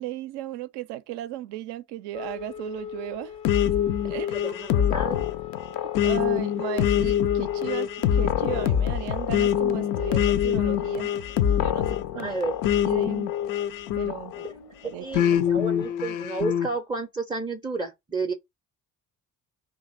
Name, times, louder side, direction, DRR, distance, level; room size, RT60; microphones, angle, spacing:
voice 1, 0.0-3.4 4.0-4.4 5.8-11.1 11.5-12.4 12.8-13.3 14.0-14.4 14.8-15.4, right 14 dB, 60° right, 0.6 m, -36 dB
sound 1, 2.1-15.9, left 7 dB, 70° left, 0.8 m, -44 dB
sound 2, 3.4-14.5 15.1-16.7, left 10 dB, 45° left, 0.5 m, -24 dB
voice 2, 4.4-5.3 12.2-12.6 14.4-14.5 15.0-18.3, right 3 dB, 10° right, 0.5 m, -31 dB
2.5 x 2.3 x 4.0 m
figure-of-eight pair, 45°, 47 cm